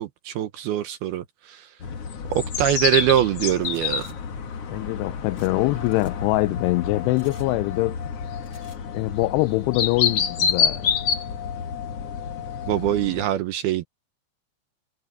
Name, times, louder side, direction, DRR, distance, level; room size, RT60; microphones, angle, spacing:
voice 1, 0.0-1.7 2.3-4.1 12.7-13.8, right 12 dB, 75° right, 2.4 m, -23 dB
sound 1, 1.8-13.2, left 7 dB, 55° left, 1.7 m, -28 dB
sound 2, 3.6-4.2 5.4-5.5 5.8-6.1 7.2-7.5 8.4-8.8, left 2 dB, 20° left, 8.5 m, -52 dB
voice 2, 4.7-8.0 8.9-10.9, left 21 dB, 85° left, 2.4 m, -23 dB
omnidirectional pair, 5.4 m